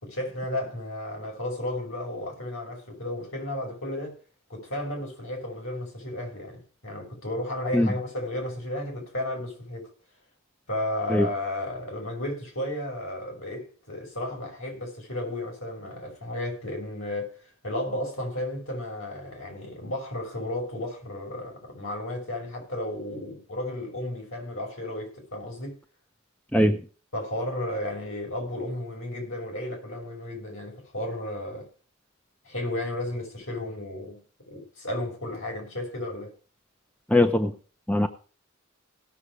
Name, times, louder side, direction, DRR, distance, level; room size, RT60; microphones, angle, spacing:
voice 1, 0.0-4.2 4.5-9.9 10.7-17.4 17.6-25.7 27.1-31.7 32.4-34.2 34.5-36.3, left 1 dB, 70° left, 6.1 m, -33 dB
voice 2, 37.1-37.5 37.9-38.1, left 1 dB, 5° left, 0.7 m, -21 dB
17.5 x 7.2 x 4.9 m
head